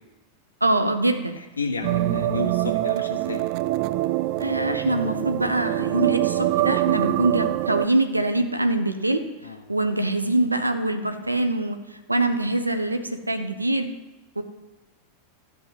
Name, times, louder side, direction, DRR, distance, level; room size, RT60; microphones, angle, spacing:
voice 1, 0.6-1.4 4.4-9.2 9.7-11.8 12.1-13.9 14.4-14.5, right 2 dB, 85° right, 8 dB, 1.0 m, -24 dB
voice 2, 1.6-3.4 9.4-9.6, left 4 dB, 75° left, 3 dB, 1.0 m, -31 dB
sound 1, 1.8-7.9, right 17 dB, 45° right, 0.3 m, -24 dB
12.0 x 6.0 x 7.7 m, 1.1 s
figure-of-eight pair, 90°, 0 cm